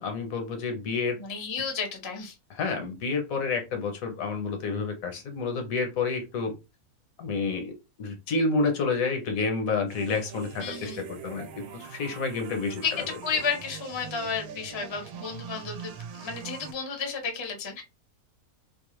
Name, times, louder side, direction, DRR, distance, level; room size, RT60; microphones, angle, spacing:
voice 1, 0.0-1.2 2.5-6.5 7.2-7.7 8.0-12.8, left 4 dB, 70° left, 1.1 m, -29 dB
voice 2, 1.1-2.3 10.6-11.0 12.8-17.8, left 5 dB, 30° left, 0.5 m, -32 dB
sound 1, 9.9-16.7, right 7 dB, 85° right, 1.1 m, -43 dB
2.6 x 2.1 x 3.0 m
omnidirectional pair, 1.5 m